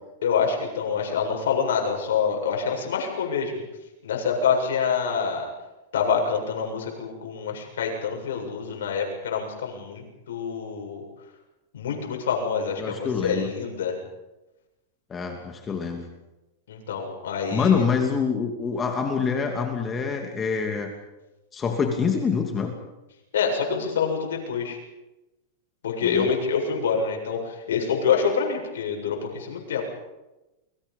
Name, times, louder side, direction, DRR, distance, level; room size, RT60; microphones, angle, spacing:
voice 1, 0.2-3.6 4.0-5.5 5.9-11.0 11.7-14.0 16.7-17.8 23.3-24.8 25.8-29.8, left 6 dB, 85° left, 1 dB, 7.6 m, -26 dB
voice 2, 12.8-13.5 15.1-16.1 17.5-20.9 21.5-22.7 26.0-26.3, left 6 dB, 20° left, 3 dB, 2.7 m, -25 dB
29.0 x 23.5 x 5.5 m, 1.0 s
supercardioid pair, 140°, 0 cm